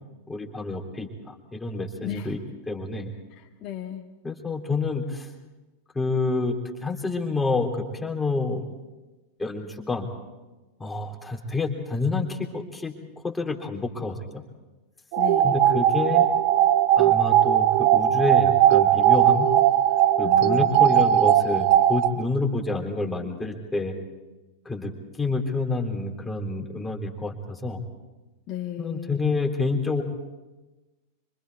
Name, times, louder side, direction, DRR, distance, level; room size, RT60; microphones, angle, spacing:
voice 1, 0.3-2.4 2.7-3.1 4.2-5.3 5.9-6.6 6.8-8.7 9.4-10.1 10.8-12.9 13.2-14.4 15.4-16.3 17.0-19.5 20.2-23.9 24.6-27.8 28.8-30.0, left 3 dB, 10° left, 2 dB, 3.1 m, -28 dB
voice 2, 2.0-2.4 3.3-4.0 15.2-15.7 20.2-21.1 28.5-29.4, left 10 dB, 35° left, 1 dB, 1.7 m, -36 dB
sound 1, 15.1-22.1, right 11 dB, 45° right, 0.8 m, -19 dB
26.5 x 25.0 x 4.7 m, 1.1 s
figure-of-eight pair, 90°, 0 cm